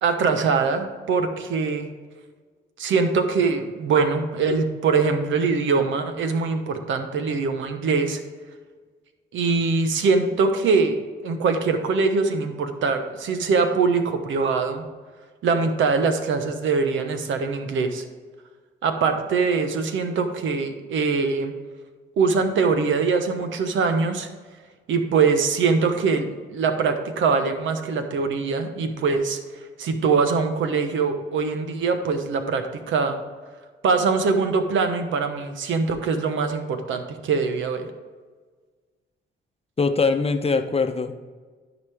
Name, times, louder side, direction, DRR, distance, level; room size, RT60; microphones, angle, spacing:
voice 1, 0.0-1.9 2.8-8.2 9.3-11.0 11.2-14.8 15.4-18.0 18.8-21.5 22.2-24.3 24.9-29.4 29.8-33.2 33.8-37.9, right 4 dB, 75° right, 7 dB, 1.1 m, -23 dB
voice 2, 39.8-41.1, left 4 dB, 30° left, 8 dB, 0.8 m, -22 dB
13.0 x 5.1 x 3.5 m, 1.4 s
supercardioid pair, 70°, 20 cm